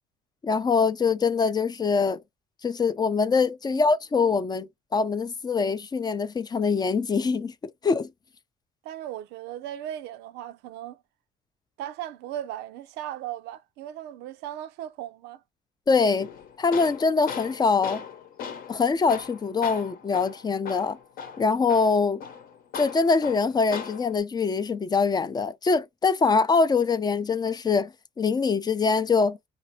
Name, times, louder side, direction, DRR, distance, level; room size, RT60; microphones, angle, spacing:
voice 1, 0.4-2.2 2.6-8.1 15.9-16.3 16.6-18.0 18.7-21.0 21.4-22.2 22.8-27.9 28.2-29.4, left 4 dB, 25° left, 0.4 m, -23 dB
voice 2, 8.8-11.0 11.8-15.4, right 11 dB, 90° right, 0.5 m, -37 dB
Tools, 16.2-24.2, left 6 dB, 60° left, 0.9 m, -39 dB
4.1 x 2.6 x 2.7 m
cardioid pair, 110°, 17 cm